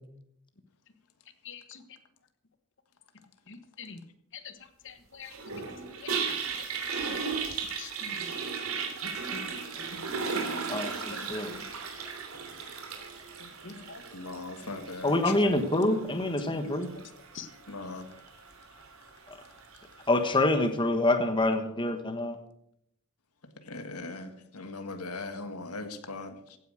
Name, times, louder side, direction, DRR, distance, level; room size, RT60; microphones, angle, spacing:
voice 1, 1.4-1.8 3.5-4.0 4.3-4.5 4.8-5.7 6.0-6.1 6.7-6.8 7.1-7.2 7.8-8.2 9.0-9.5 10.3-10.8 11.2-11.6 13.6-14.2 14.6-14.8 15.8-16.8 17.3-17.5, left 4 dB, 55° left, 1.5 m, -45 dB
Toilet flush, 5.3-20.5, right 5 dB, 70° right, 3.0 m, -37 dB
voice 2, 10.7-11.5 15.0-16.9 20.1-22.4, left 2 dB, 20° left, 1.3 m, -26 dB
voice 3, 14.1-15.7 17.7-18.1 23.6-26.6, left 3 dB, 85° left, 1.7 m, -39 dB
16.0 x 9.4 x 6.4 m
head